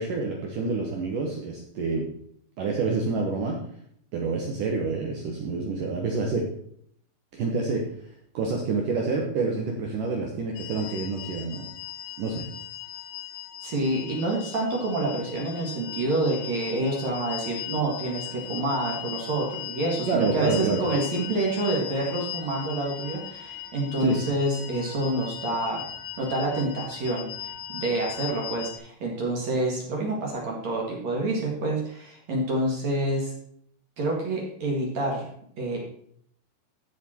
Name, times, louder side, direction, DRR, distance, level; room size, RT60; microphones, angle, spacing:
voice 1, 0.0-2.1 2.6-3.6 4.1-6.5 7.3-7.8 8.3-11.7 12.2-12.5 20.1-20.9 24.0-24.2, right 4 dB, 80° right, 0 dB, 1.9 m, -27 dB
sound 1, 10.6-28.8, left 11 dB, 60° left, 2.4 m, -38 dB
voice 2, 13.6-25.8 26.2-33.3 34.0-35.3 35.6-35.8, right 2 dB, 50° right, -2 dB, 2.3 m, -28 dB
14.5 x 5.9 x 4.4 m, 0.65 s
omnidirectional pair, 5.6 m